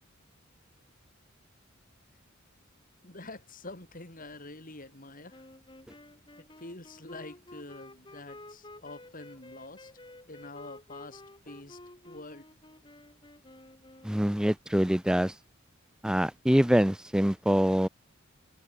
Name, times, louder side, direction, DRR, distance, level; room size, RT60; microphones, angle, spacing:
voice 1, 3.0-5.5 6.5-9.9 10.3-11.8 12.0-12.4, left 2 dB, 45° left, 5.5 m, -46 dB
sound 1, 5.3-14.5, left 2 dB, 25° left, 7.8 m, -51 dB
voice 2, 14.0-15.3 16.0-17.9, equal, 5° right, 0.5 m, -25 dB
head